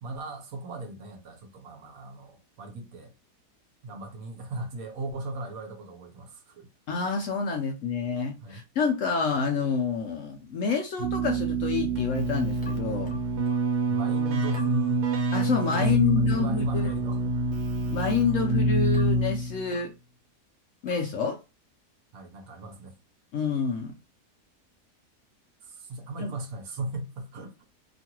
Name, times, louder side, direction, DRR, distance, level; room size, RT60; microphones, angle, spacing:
voice 1, 0.0-3.1 3.8-6.7 8.4-8.6 13.9-15.1 15.7-15.8 16.1-17.2 22.1-22.9 25.6-27.5, right 2 dB, 65° right, 1.1 m, -37 dB
voice 2, 6.9-13.2 15.3-16.9 17.9-19.9 20.8-21.4 23.3-23.9 26.2-26.3, left 5 dB, 70° left, 0.8 m, -28 dB
Keyboard (musical), 11.0-19.7, right 2 dB, 85° right, 1.4 m, -26 dB
sound 1, 12.6-13.7 14.5-14.8 15.7-15.9 16.8-17.1 18.0-18.3 18.9-19.2 19.7-20.0 20.9-21.2, left 1 dB, 5° left, 0.8 m, -47 dB
3.0 x 2.5 x 2.8 m
omnidirectional pair, 1.7 m